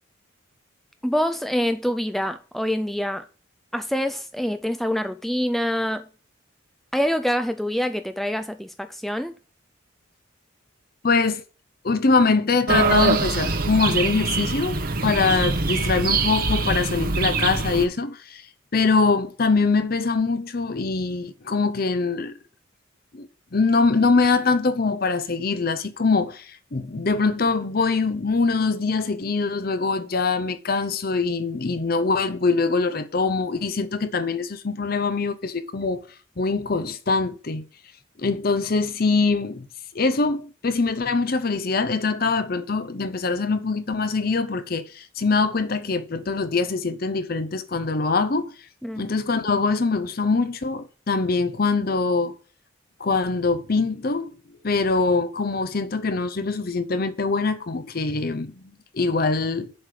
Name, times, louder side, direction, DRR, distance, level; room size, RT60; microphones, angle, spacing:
voice 1, 1.0-3.3 3.7-6.1 6.9-9.4 48.8-49.1, equal, ahead, 0.4 m, -25 dB
voice 2, 11.0-11.4 11.8-18.4 18.7-22.4 23.1-36.1 36.4-37.6 38.2-39.7 39.9-48.5 48.9-52.3 53.0-59.7, left 4 dB, 45° left, 0.7 m, -23 dB
sound 1, 12.7-17.9, right 3 dB, 45° right, 0.9 m, -23 dB
7.2 x 5.0 x 6.5 m
head